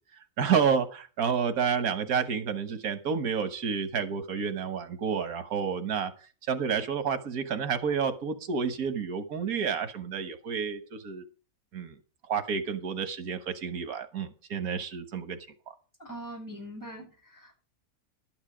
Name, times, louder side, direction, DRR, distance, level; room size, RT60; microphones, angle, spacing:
voice 1, 0.4-6.1 6.5-11.2 11.7-12.0 12.3-15.4, right 6 dB, 85° right, 8 dB, 1.7 m, -30 dB
voice 2, 16.0-17.5, equal, 15° left, -4 dB, 8.1 m, -42 dB
12.0 x 9.7 x 4.9 m, 0.36 s
omnidirectional pair, 1.5 m